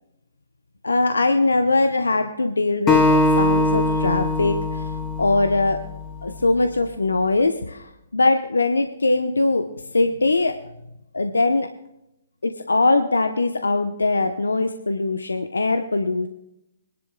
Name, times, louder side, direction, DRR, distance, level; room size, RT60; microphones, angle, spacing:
voice 1, 0.8-5.8 6.2-9.7 9.9-10.6 11.1-11.7 12.4-16.3, left 3 dB, 80° left, 7 dB, 0.9 m, -21 dB
Acoustic guitar, 2.9-6.2, left 2 dB, 20° left, 2.7 m, -21 dB
25.0 x 11.0 x 2.3 m, 0.83 s
figure-of-eight pair, 130°, 0 cm